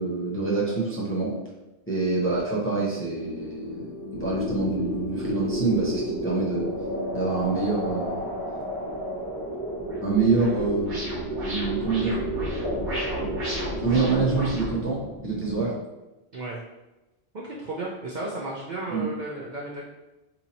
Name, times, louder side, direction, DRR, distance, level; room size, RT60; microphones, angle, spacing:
voice 1, 0.0-1.3 1.9-6.7 7.1-8.2 10.0-11.0 11.4-12.2 13.8-15.7 18.9-19.0, right 3 dB, 15° left, -6 dB, 0.5 m, -26 dB
sound 1, 2.2-7.4, left 1 dB, 55° left, 1.3 m, -38 dB
sound 2, 4.1-15.7, equal, 20° right, 0.8 m, -32 dB
sound 3, 9.8-14.7, equal, 75° right, 1.4 m, -33 dB
voice 2, 16.3-16.6 17.3-19.9, right 2 dB, 55° right, -5 dB, 0.5 m, -34 dB
2.8 x 2.6 x 4.0 m, 1.0 s
omnidirectional pair, 1.2 m